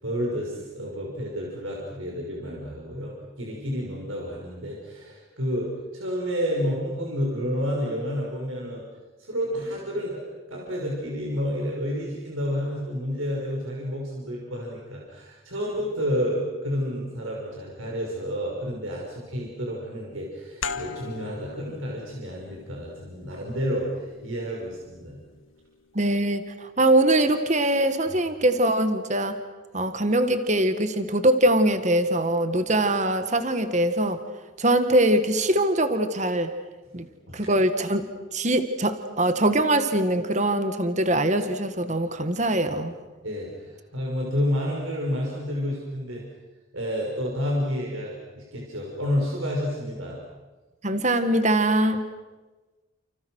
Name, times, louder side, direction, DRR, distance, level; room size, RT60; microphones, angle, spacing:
voice 1, 0.0-8.8 9.2-10.2 10.5-25.2 28.1-28.2 36.9-37.5 43.2-46.2 46.7-50.2, equal, 85° right, -2 dB, 5.9 m, -30 dB
sound 1, 20.6-25.9, left 5 dB, 80° left, 1.7 m, -40 dB
voice 2, 26.0-29.4 29.7-34.2 34.6-36.5 36.9-37.1 37.3-38.0 38.3-42.9 50.8-52.0, right 1 dB, 35° right, 9 dB, 1.7 m, -22 dB
30.0 x 29.0 x 6.4 m, 1.2 s
head